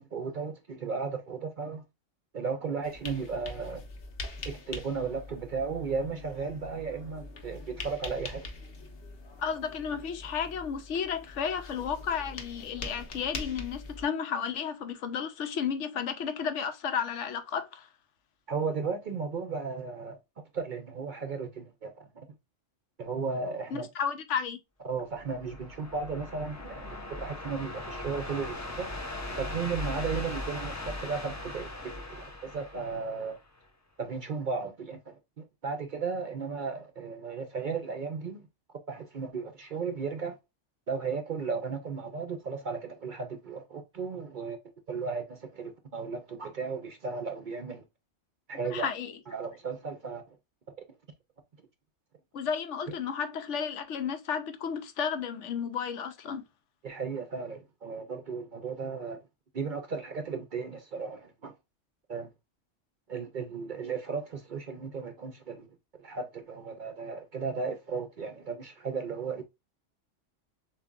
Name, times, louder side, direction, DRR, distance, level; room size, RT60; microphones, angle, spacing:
voice 1, 0.0-1.8 2.3-3.8 4.4-8.5 18.5-22.1 23.0-23.9 24.9-29.1 29.3-33.4 34.0-38.5 38.9-40.4 40.9-44.6 44.9-47.9 48.5-48.9 49.3-50.4 56.8-59.2 59.5-61.5 62.1-62.3 63.1-65.7 66.0-69.4, right 5 dB, 55° right, 0.6 m, -35 dB
sound 1, 2.8-14.1, left 3 dB, 55° left, 1.0 m, -43 dB
voice 2, 9.4-17.9 23.7-24.6 48.6-49.1 52.3-56.4, left 7 dB, 75° left, 1.0 m, -33 dB
sound 2, 25.2-33.6, left 2 dB, 20° left, 0.5 m, -39 dB
6.9 x 2.5 x 2.4 m
omnidirectional pair, 1.3 m